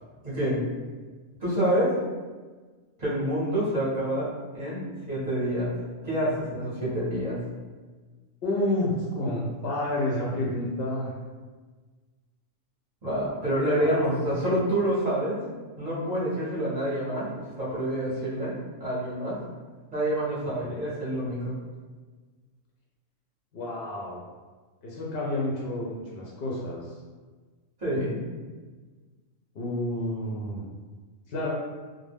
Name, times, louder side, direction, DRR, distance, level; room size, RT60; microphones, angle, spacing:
voice 1, 0.2-0.6 1.4-2.0 3.0-4.3 4.5-5.7 6.0-7.4 13.0-15.4 15.8-18.5 18.8-19.4 19.9-21.6 27.8-28.2, right 1 dB, 40° right, -8 dB, 0.7 m, -27 dB
voice 2, 8.4-11.1 13.8-14.1 20.6-20.8 23.5-24.2 24.8-27.0 29.5-30.7 31.3-31.5, left 1 dB, 65° left, -4 dB, 0.6 m, -30 dB
2.3 x 2.0 x 3.3 m, 1.4 s
omnidirectional pair, 1.4 m